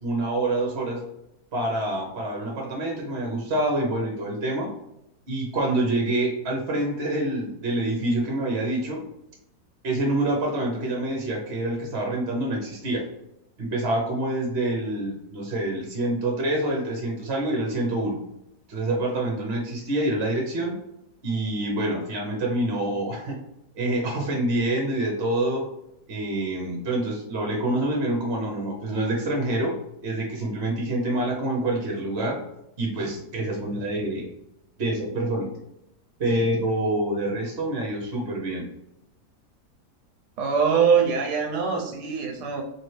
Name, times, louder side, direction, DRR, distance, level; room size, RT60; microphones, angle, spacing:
voice 1, 0.0-1.0 1.5-4.7 5.3-9.0 9.8-13.1 13.6-18.2 18.7-20.7 21.2-23.4 23.8-25.7 26.1-29.7 30.0-32.4 32.8-34.3 34.8-35.5 36.2-38.6, right 1 dB, 50° right, 0 dB, 0.9 m, -26 dB
voice 2, 40.4-42.6, right 6 dB, 85° right, 1 dB, 1.3 m, -23 dB
4.4 x 2.7 x 3.2 m, 0.84 s
omnidirectional pair, 1.8 m